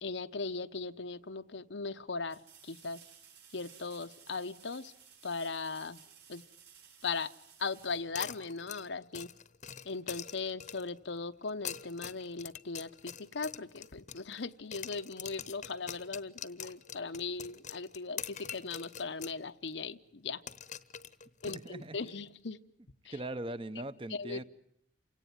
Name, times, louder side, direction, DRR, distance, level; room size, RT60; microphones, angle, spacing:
voice 1, 0.0-3.0 3.5-4.9 5.2-6.0 6.3-6.4 7.0-7.3 7.6-9.3 9.8-20.4 21.4-22.6 23.0-23.1 24.1-24.4, left 4 dB, 90° left, 9 dB, 0.9 m, -38 dB
sound 1, 2.3-8.9 11.7-11.8, right 7 dB, 65° right, 6.1 m, -57 dB
sound 2, 8.2-11.0 11.5-14.5 14.7-19.4 19.7-19.8 20.5-22.1, left 9 dB, 40° left, 0.9 m, -44 dB
voice 2, 21.5-22.0 23.1-24.4, right 1 dB, 30° right, 14 dB, 1.0 m, -40 dB
28.5 x 17.5 x 9.6 m, 0.74 s
head